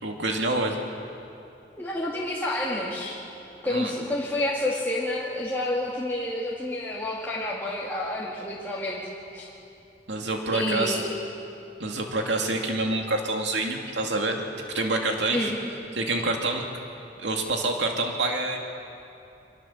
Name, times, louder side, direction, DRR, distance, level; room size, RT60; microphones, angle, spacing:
voice 1, 0.0-0.8 3.7-3.9 10.1-11.0 11.8-14.4 14.7-15.5 16.0-16.6 17.2-18.6, right 2 dB, 80° right, 2 dB, 2.3 m, -27 dB
voice 2, 1.8-3.2 3.6-9.0 9.3-9.5 10.5-11.1 15.3-15.6, left 1 dB, 10° left, -6 dB, 2.3 m, -29 dB
24.5 x 21.5 x 7.3 m, 2.8 s
head